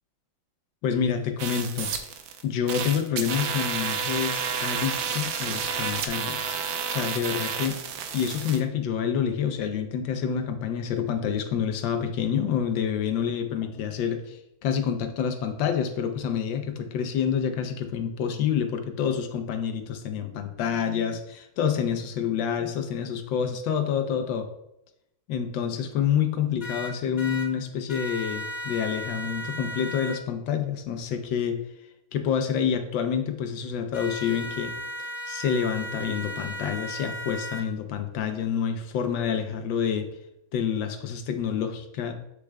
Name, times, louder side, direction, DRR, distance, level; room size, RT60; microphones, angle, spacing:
voice 1, 0.8-1.9 2.4-6.6 6.9-7.8 8.1-24.5 25.3-31.6 32.1-34.7 35.0-40.1 40.5-42.1, left 8 dB, 75° left, 7 dB, 1.3 m, -28 dB
sound 1, 1.4-2.4 2.7-8.6, right 7 dB, 80° right, 1.4 m, -30 dB
sound 2, 26.6-27.5 27.9-30.2 33.9-37.6, equal, 35° left, 0.7 m, -35 dB
7.7 x 6.6 x 2.2 m, 0.83 s
omnidirectional pair, 2.1 m